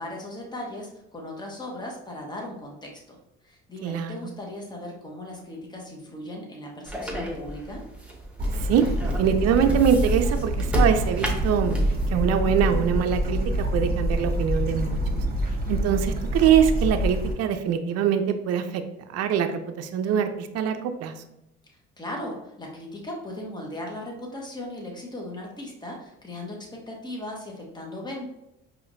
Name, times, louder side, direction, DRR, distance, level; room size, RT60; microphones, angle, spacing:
voice 1, 0.0-3.2 3.4-7.8 21.6-28.3, left 1 dB, 15° left, -1 dB, 1.2 m, -37 dB
voice 2, 3.8-4.3 8.7-8.8 9.2-11.7 12.1-13.4 13.7-15.0 15.7-18.8 19.1-21.1, right 8 dB, 55° right, 7 dB, 0.5 m, -23 dB
sound 1, 6.9-12.1, right 1 dB, 5° right, 1.0 m, -30 dB
Bird / Stream, 8.4-17.3, equal, 30° right, 1.2 m, -26 dB
4.8 x 3.1 x 2.6 m, 0.88 s
hypercardioid pair, 65°, 29 cm